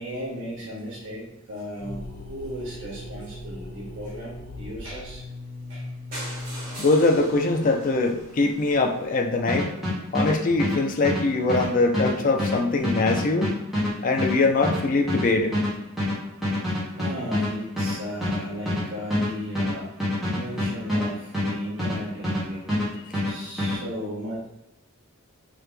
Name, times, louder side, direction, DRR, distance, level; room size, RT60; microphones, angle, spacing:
voice 1, 0.0-5.2 5.7-5.9 11.1-11.2 16.2-16.6 16.9-19.9 20.2-22.6 23.2-24.5, equal, 60° right, -6 dB, 0.9 m, -35 dB
sound 1, 1.8-9.5, left 1 dB, 60° left, 0.8 m, -40 dB
sound 2, 6.1-10.0 10.6-10.7 11.0-11.1 11.4-11.5 11.6-11.7, right 1 dB, 40° right, 1.3 m, -41 dB
voice 2, 6.8-9.7 10.1-13.6 14.0-15.6, left 3 dB, 40° left, 5 dB, 0.4 m, -22 dB
sound 3, 9.5-22.4 22.7-23.8, left 1 dB, ahead, 1.0 m, -26 dB
3.4 x 2.8 x 3.3 m, 0.82 s
head